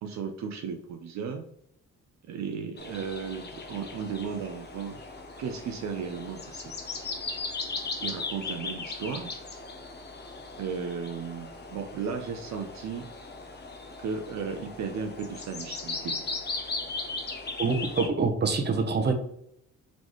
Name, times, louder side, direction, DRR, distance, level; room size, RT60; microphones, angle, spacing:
voice 1, 0.0-1.5 2.3-5.0 5.4-6.7 8.0-9.3 10.6-13.1 14.0-16.2, right 6 dB, 65° right, 5 dB, 0.6 m, -35 dB
sound 1, 2.8-18.1, left 3 dB, 35° left, 0.9 m, -38 dB
voice 2, 17.6-19.1, right 4 dB, 35° right, 4 dB, 0.9 m, -25 dB
3.9 x 3.7 x 3.1 m, 0.74 s
cardioid pair, 90°, 30 cm